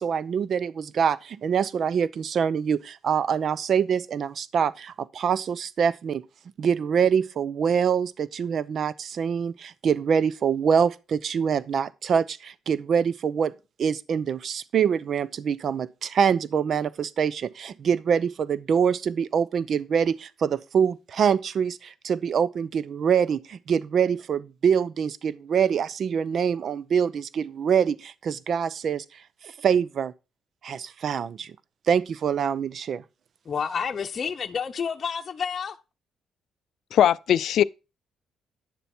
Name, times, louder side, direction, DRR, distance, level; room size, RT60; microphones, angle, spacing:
voice 1, 0.0-6.2 6.6-13.5 13.8-29.0 29.4-30.1 30.6-31.5 31.9-33.0, right 7 dB, 60° right, 0.6 m, -25 dB
voice 2, 33.5-35.8, left 6 dB, 45° left, 0.8 m, -29 dB
voice 3, 36.9-37.6, left 10 dB, 70° left, 0.4 m, -20 dB
10.5 x 7.0 x 4.4 m
cardioid pair, 90°, 0 cm